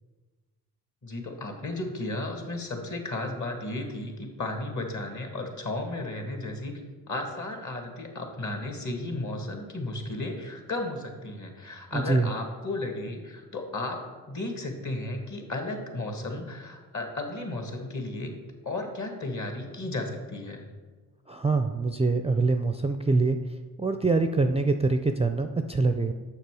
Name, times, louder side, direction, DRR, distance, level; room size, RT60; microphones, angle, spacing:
voice 1, 1.0-6.8 7.1-18.3 18.6-20.7, left 2 dB, 45° left, 3 dB, 1.9 m, -34 dB
voice 2, 11.9-12.3 21.3-23.4 23.8-26.1, right 3 dB, 15° right, 7 dB, 0.4 m, -24 dB
6.8 x 5.9 x 4.8 m, 1.4 s
supercardioid pair, 45°, 41 cm